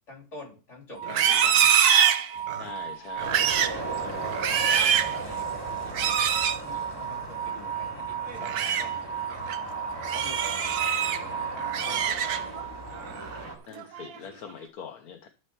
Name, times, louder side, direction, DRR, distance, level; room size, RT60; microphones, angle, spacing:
voice 1, 0.1-1.7 3.7-4.0 5.1-9.0 9.3-9.4 10.1-11.3 11.8-12.6, left 2 dB, 50° left, -1 dB, 3.8 m, -46 dB
sound 1, 1.0-13.2, right 9 dB, 55° right, 1.7 m, -35 dB
Livestock farm animals working animals, 1.0-2.7 3.2-3.8 4.2-5.2 5.9-6.6 8.3-8.9 9.3-9.6 10.0-11.2 11.6-12.6 13.0-13.4 13.8-14.2, right 8 dB, 75° right, 1.3 m, -24 dB
voice 2, 2.6-3.5 4.0-4.3 13.7-15.3, left 7 dB, 75° left, 6 dB, 1.5 m, -43 dB
sound 2, 3.2-13.6, right 2 dB, 15° right, 2.8 m, -37 dB
12.5 x 4.4 x 7.0 m, 0.36 s
omnidirectional pair, 1.6 m